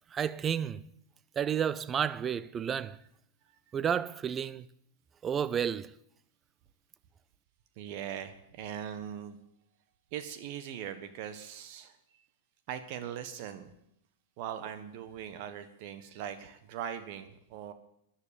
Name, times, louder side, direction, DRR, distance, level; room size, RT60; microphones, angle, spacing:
voice 1, 0.1-0.9 1.4-3.0 3.7-4.7 5.2-5.9, right 8 dB, 25° right, 0.6 m, -31 dB
voice 2, 7.8-9.4 10.1-12.2 12.7-13.7 14.4-17.7, right 9 dB, 50° right, 1.3 m, -40 dB
13.5 x 11.5 x 6.9 m
hypercardioid pair, 100°, 0 cm